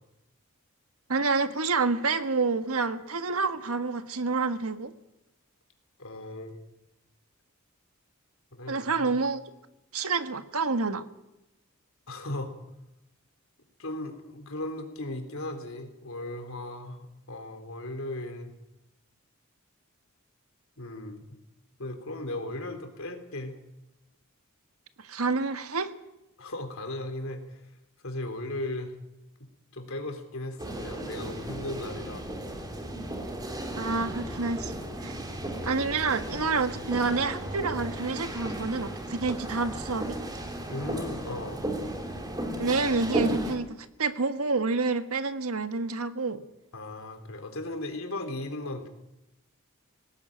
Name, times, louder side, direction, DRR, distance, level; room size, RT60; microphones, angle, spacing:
voice 1, 1.1-4.9 8.7-9.4 9.9-11.0 25.0-25.9 33.3-33.4 33.8-34.7 35.0-35.2 35.6-40.2 42.5-43.7 44.0-46.4, right 4 dB, 90° right, 10 dB, 1.5 m, -28 dB
voice 2, 6.0-6.6 8.5-9.2 12.1-12.5 13.8-18.5 20.8-21.2 21.8-23.6 26.4-27.6 28.0-29.0 29.7-32.3 34.3-34.6 36.8-36.9 40.7-41.6 46.7-48.9, left 1 dB, 70° left, 6 dB, 3.5 m, -37 dB
sound 1, 30.6-43.6, right 1 dB, 20° right, 3.2 m, -35 dB
18.5 x 18.5 x 9.0 m, 0.93 s
head